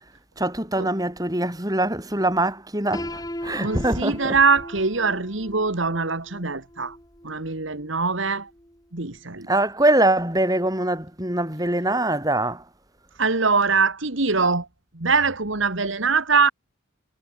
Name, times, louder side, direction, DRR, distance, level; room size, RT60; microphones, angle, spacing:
voice 1, 0.4-4.3 9.5-12.6, right 1 dB, 20° right, 6.0 m, -23 dB
Piano, 2.9-8.8, left 1 dB, 20° left, 7.0 m, -39 dB
voice 2, 3.6-7.0 7.2-8.5 8.9-9.5 13.2-14.7 14.9-16.5, right 4 dB, 70° right, 2.1 m, -22 dB
head